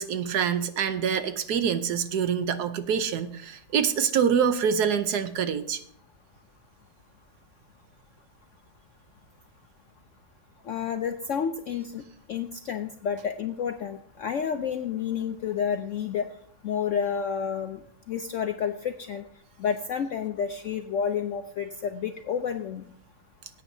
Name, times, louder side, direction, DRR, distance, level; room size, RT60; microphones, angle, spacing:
voice 1, 0.0-5.8, right 7 dB, 70° right, 10 dB, 1.2 m, -26 dB
voice 2, 10.7-12.0 12.3-16.3 16.6-17.8 18.1-19.2 19.6-22.8, left 7 dB, 70° left, 7 dB, 0.7 m, -30 dB
20.0 x 8.8 x 2.7 m, 0.66 s
omnidirectional pair, 1.9 m